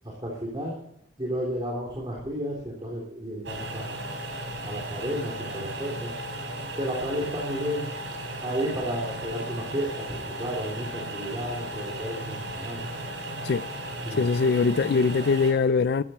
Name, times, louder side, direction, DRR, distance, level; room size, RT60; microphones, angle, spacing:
voice 1, 0.0-0.8 1.2-4.0 4.6-6.1 6.7-7.9 8.4-12.9 14.0-14.2, equal, 25° right, 3.3 m, -32 dB
sound 1, 3.4-15.5, right 1 dB, 85° right, 3.9 m, -36 dB
voice 2, 14.1-16.0, left 4 dB, 60° left, 0.4 m, -22 dB
15.0 x 12.0 x 4.4 m
head